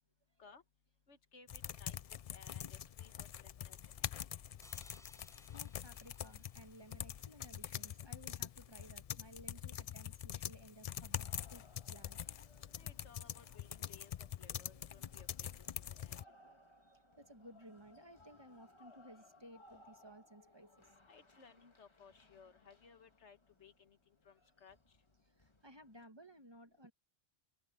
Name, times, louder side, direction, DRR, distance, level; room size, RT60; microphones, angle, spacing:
voice 1, 1.1-2.0 2.3-4.1 12.7-14.1 14.4-15.5 15.9-16.2 16.4-16.5 21.1-24.0 24.3-24.8, left 5 dB, 85° left, 1.8 m, -61 dB
sound 1, 1.5-16.2, left 9 dB, 65° left, 0.3 m, -45 dB
sound 2, 4.6-7.9, equal, 5° left, 5.1 m, -66 dB
voice 2, 5.5-12.2 17.2-20.7 25.6-26.9, equal, 25° right, 1.5 m, -58 dB
sound 3, 11.2-26.1, left 1 dB, 25° left, 1.5 m, -66 dB
open air
omnidirectional pair, 1.1 m